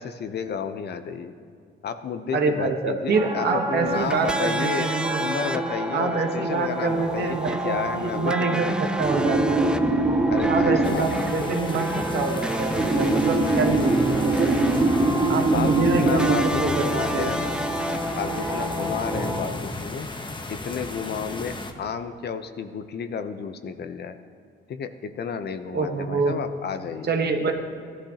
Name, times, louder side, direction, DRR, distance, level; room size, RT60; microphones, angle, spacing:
voice 1, 0.0-1.3 1.8-4.9 5.2-7.4 7.6-9.0 10.3-11.1 15.5-17.6 18.2-20.1 20.5-24.2 24.7-27.1, left 6 dB, 55° left, 9 dB, 0.7 m, -32 dB
voice 2, 2.3-5.2 5.9-9.8 10.5-14.7 15.3-17.3 25.7-26.4 27.0-27.5, right 4 dB, 55° right, 4 dB, 1.2 m, -26 dB
sound 1, 3.1-19.4, right 2 dB, 25° right, 2.1 m, -25 dB
sound 2, 3.9-19.1, right 1 dB, 5° right, 0.4 m, -32 dB
sound 3, 10.8-21.7, left 2 dB, 25° left, 1.0 m, -34 dB
16.0 x 11.5 x 2.9 m, 2.2 s
cardioid pair, 90°, 20 cm